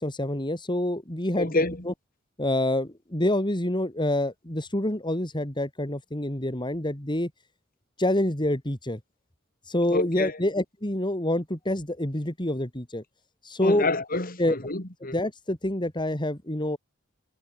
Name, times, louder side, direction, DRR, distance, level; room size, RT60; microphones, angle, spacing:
voice 1, 0.0-1.9 2.4-7.3 8.0-9.0 9.6-13.0 13.4-13.9 14.4-14.6 15.1-16.8, left 1 dB, 20° left, 3.6 m, -27 dB
voice 2, 1.4-1.8 9.9-10.4 13.6-15.2, left 2 dB, 45° left, 4.4 m, -28 dB
head